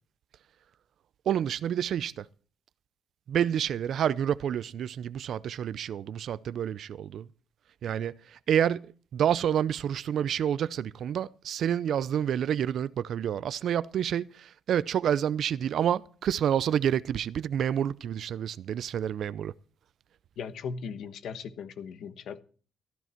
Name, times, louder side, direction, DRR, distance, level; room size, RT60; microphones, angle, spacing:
voice 1, 1.3-2.3 3.3-7.3 7.8-19.5, right 9 dB, 65° right, 0.5 m, -28 dB
voice 2, 20.4-22.4, left 6 dB, 75° left, 1.2 m, -38 dB
14.5 x 11.0 x 4.5 m
cardioid pair, 90°, 0 cm